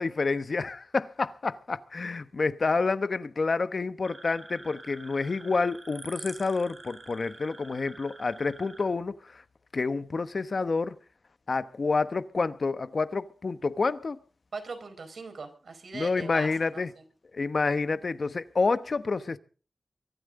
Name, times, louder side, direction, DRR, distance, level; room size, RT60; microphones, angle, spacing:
voice 1, 0.0-9.4 9.7-10.9 11.5-14.2 15.9-16.9 17.3-19.4, left 4 dB, 55° left, 1.0 m, -28 dB
sound 1, 4.0-8.8, right 2 dB, 40° right, 5.6 m, -47 dB
voice 2, 14.5-17.0, right 4 dB, 80° right, 5.1 m, -40 dB
24.0 x 13.5 x 3.8 m
wide cardioid pair, 100°, 0 cm